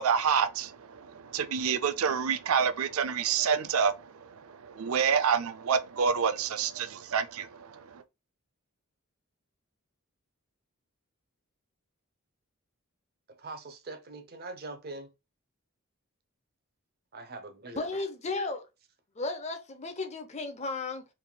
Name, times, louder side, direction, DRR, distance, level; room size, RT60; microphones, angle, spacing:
voice 1, 0.0-8.0, right 6 dB, 80° right, 0.4 m, -28 dB
voice 2, 13.3-15.1 17.1-17.8, right 2 dB, 45° right, 0.7 m, -42 dB
voice 3, 17.8-18.7 19.2-21.1, left 3 dB, 30° left, 0.7 m, -34 dB
4.7 x 3.5 x 2.3 m
head